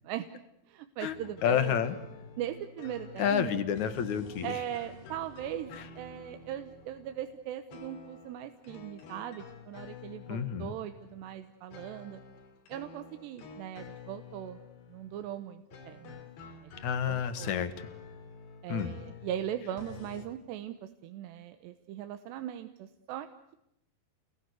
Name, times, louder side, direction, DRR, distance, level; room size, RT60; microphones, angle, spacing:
voice 1, 0.7-1.8 2.4-3.7 4.4-12.2 12.7-14.6 14.9-16.2 17.1-17.5 18.6-23.3, right 11 dB, 85° right, 9 dB, 3.3 m, -39 dB
sound 1, 1.1-20.3, left 5 dB, 90° left, 5.2 m, -50 dB
voice 2, 1.4-2.0 3.2-4.6 5.7-5.8 10.3-10.7 16.8-17.7 18.7-19.0, left 8 dB, 55° left, 11 dB, 2.5 m, -29 dB
30.0 x 21.0 x 8.3 m, 0.84 s
omnidirectional pair, 4.8 m